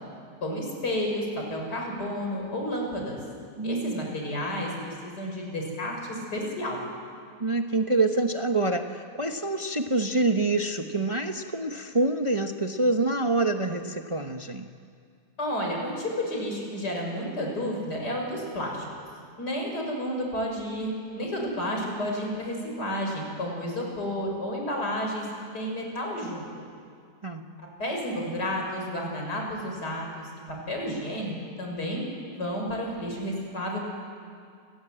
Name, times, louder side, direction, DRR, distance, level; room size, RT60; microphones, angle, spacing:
voice 1, 0.4-3.2 3.6-6.8 15.4-18.9 19.4-25.3 25.5-26.4 27.8-30.3 30.7-31.3 31.6-33.9, equal, 80° left, 0 dB, 6.4 m, -31 dB
voice 2, 3.6-4.1 7.4-14.6 27.2-27.4, right 2 dB, 25° right, 5 dB, 0.9 m, -26 dB
29.0 x 20.0 x 8.9 m, 2.2 s
omnidirectional pair, 1.7 m